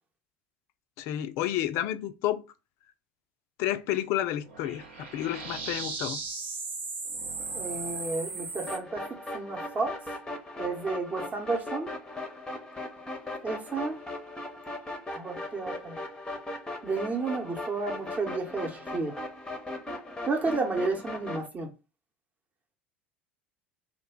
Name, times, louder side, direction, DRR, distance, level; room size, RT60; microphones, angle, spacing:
voice 1, 1.0-2.5 3.6-6.2, left 13 dB, 50° left, 0.3 m, -30 dB
sound 1, 4.5-8.8, right 4 dB, 70° right, 0.8 m, -36 dB
voice 2, 7.5-9.0 9.3-10.0 10.6-11.9 13.4-14.0 15.1-16.0 16.8-19.2 20.2-21.7, right 3 dB, 25° right, 0.9 m, -31 dB
sound 2, 8.7-21.5, left 2 dB, 10° left, 0.7 m, -38 dB
2.4 x 2.1 x 3.5 m
figure-of-eight pair, 70°, 6 cm